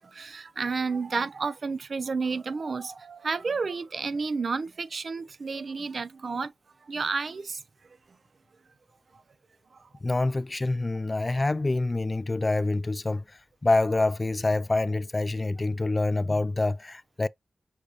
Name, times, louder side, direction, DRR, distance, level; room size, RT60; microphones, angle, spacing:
voice 1, 0.2-6.5 6.9-7.6, right 4 dB, 65° right, 0.5 m, -31 dB
voice 2, 10.0-17.3, left 2 dB, 35° left, 0.3 m, -26 dB
6.4 x 2.4 x 2.7 m
cardioid pair, 40°, 0 cm